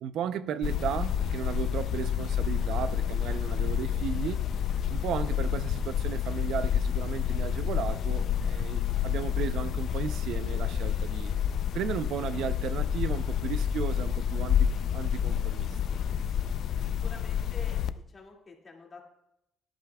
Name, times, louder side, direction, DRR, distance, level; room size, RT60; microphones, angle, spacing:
voice 1, 0.0-4.4 4.9-11.3 11.7-15.8, right 9 dB, 65° right, 0.6 m, -35 dB
sound 1, 0.6-17.9, left 9 dB, 55° left, 0.4 m, -29 dB
voice 2, 16.8-19.0, left 3 dB, 25° left, 2.2 m, -48 dB
17.5 x 11.0 x 2.3 m
cardioid pair, 140°, 0 cm